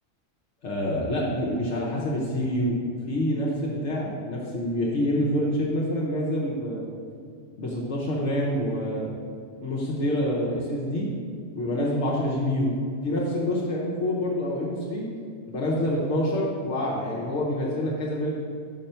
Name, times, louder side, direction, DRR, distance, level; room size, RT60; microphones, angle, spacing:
voice 1, 0.6-2.8 3.1-6.8 7.6-9.1 9.6-11.1 11.5-12.7 13.0-15.0 15.5-18.3, left 1 dB, 70° left, -5 dB, 1.1 m, -27 dB
5.8 x 4.4 x 5.4 m, 2.4 s
omnidirectional pair, 1.3 m